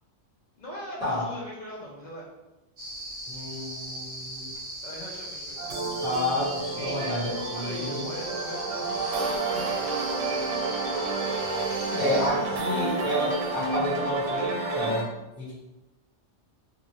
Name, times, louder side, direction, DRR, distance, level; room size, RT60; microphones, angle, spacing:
voice 1, 0.6-2.2 4.8-5.7 6.7-10.0 11.9-12.5, left 1 dB, 45° left, -4 dB, 0.7 m, -41 dB
sound 1, 2.8-12.3, equal, 40° right, 1.1 m, -38 dB
voice 2, 3.3-4.5 6.0-8.1 12.0-15.6, left 1 dB, 5° right, -11 dB, 1.3 m, -30 dB
sound 2, 5.6-15.0, right 3 dB, 80° right, 0.9 m, -30 dB
2.6 x 2.5 x 2.9 m, 1.0 s
omnidirectional pair, 1.2 m